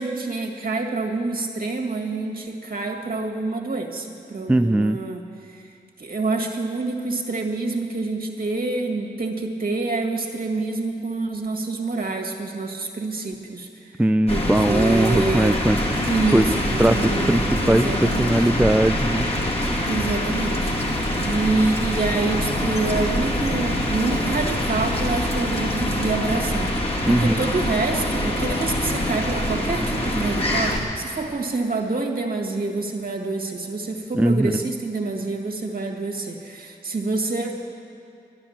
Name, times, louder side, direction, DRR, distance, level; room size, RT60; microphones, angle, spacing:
voice 1, 0.0-5.2 5.5-5.7 6.0-14.0 14.3-15.6 16.1-18.4 19.8-20.7 21.2-26.7 27.0-37.5, right 3 dB, 55° right, 1 dB, 1.8 m, -27 dB
voice 2, 4.5-5.0 14.0-15.8 16.3-19.3 27.1-27.5 34.1-34.6, right 1 dB, 5° right, 9 dB, 0.3 m, -20 dB
sound 1, 14.3-30.8, left 1 dB, 35° left, 2.2 m, -24 dB
12.0 x 10.5 x 7.3 m, 2.6 s
cardioid pair, 45°, 18 cm